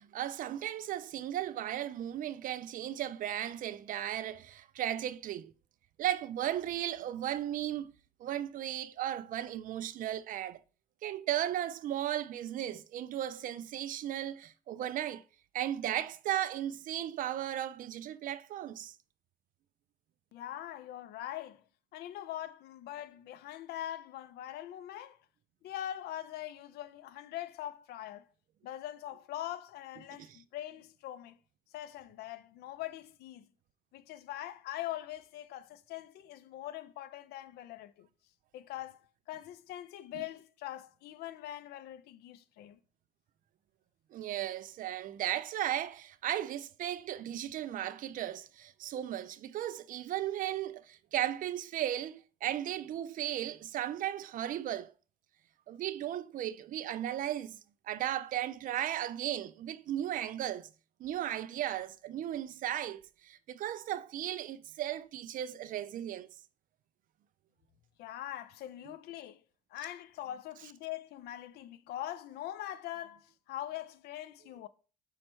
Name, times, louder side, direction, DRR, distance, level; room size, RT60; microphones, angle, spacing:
voice 1, 0.0-5.5 6.0-7.9 8.2-10.6 11.0-15.2 15.5-19.0 30.2-30.3 40.1-40.2 44.1-54.9 55.7-57.6 57.8-60.7 61.0-66.3, right 12 dB, 55° right, 0.4 m, -36 dB
voice 2, 20.3-21.6 21.9-25.2 25.6-28.3 28.6-31.4 31.7-33.5 33.9-38.1 38.5-42.8 68.0-69.4 69.7-74.7, left 12 dB, 70° left, 0.4 m, -42 dB
5.4 x 2.1 x 4.4 m
cardioid pair, 110°, 17 cm